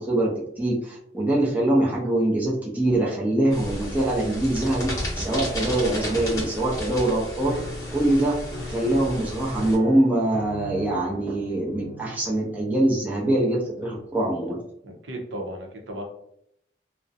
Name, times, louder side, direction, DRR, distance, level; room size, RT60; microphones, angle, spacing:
voice 1, 0.0-7.6 7.9-8.4 8.7-14.6, right 1 dB, 10° right, -5 dB, 0.5 m, -23 dB
sound 1, 3.5-9.7, equal, 20° left, 0.7 m, -33 dB
Piano, 7.5-14.3, left 1 dB, 50° left, 0.4 m, -40 dB
voice 2, 14.8-16.0, right 1 dB, 85° right, 1 dB, 0.6 m, -35 dB
2.4 x 2.0 x 2.6 m, 0.74 s
head